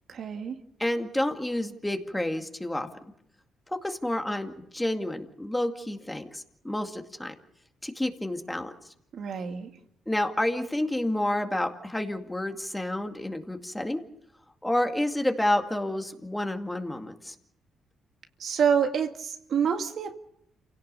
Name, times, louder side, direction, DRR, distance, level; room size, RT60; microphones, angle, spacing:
voice 1, 0.1-0.6 9.1-9.7 18.4-20.2, right 7 dB, 60° right, 5 dB, 2.1 m, -27 dB
voice 2, 0.8-2.9 3.7-7.3 7.8-8.7 10.1-14.0 14.6-17.3, left 1 dB, 10° left, 5 dB, 2.3 m, -29 dB
28.0 x 17.5 x 6.9 m, 0.76 s
cardioid pair, 90°, 0 cm